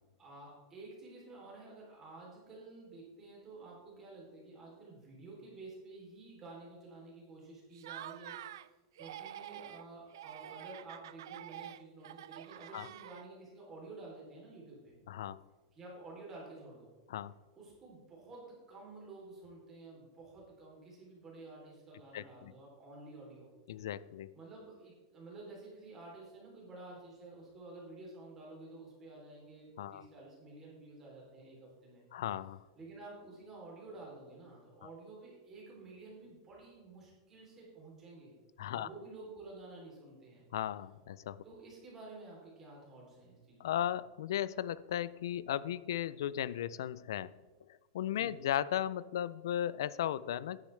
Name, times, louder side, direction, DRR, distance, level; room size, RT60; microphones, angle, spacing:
voice 1, 0.2-8.3 9.0-14.9 15.7-16.9 17.6-23.5 24.3-32.0 32.8-38.3 38.7-40.4 41.4-43.8 48.1-48.4, right 2 dB, 20° right, -3 dB, 3.2 m, -51 dB
Laughter, 7.7-8.7 9.0-9.8 10.1-13.5, right 12 dB, 80° right, 0.4 m, -47 dB
voice 2, 15.1-15.4 17.1-17.3 22.1-22.5 23.7-24.3 29.8-30.1 32.1-32.6 38.6-38.9 40.5-41.4 43.6-47.3 47.9-50.7, left 11 dB, 85° left, 19 dB, 0.4 m, -36 dB
9.9 x 9.8 x 3.3 m, 1.3 s
supercardioid pair, 165°, 2 cm